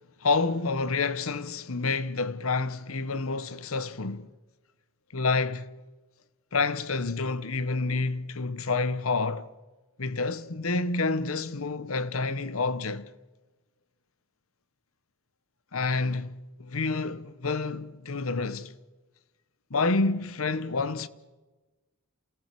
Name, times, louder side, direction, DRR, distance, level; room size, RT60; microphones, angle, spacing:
voice 1, 0.2-4.3 5.1-5.7 6.5-9.5 10.0-13.1 15.7-18.7 19.7-21.1, left 3 dB, 85° left, 1.1 m, -28 dB
28.5 x 18.5 x 7.6 m
head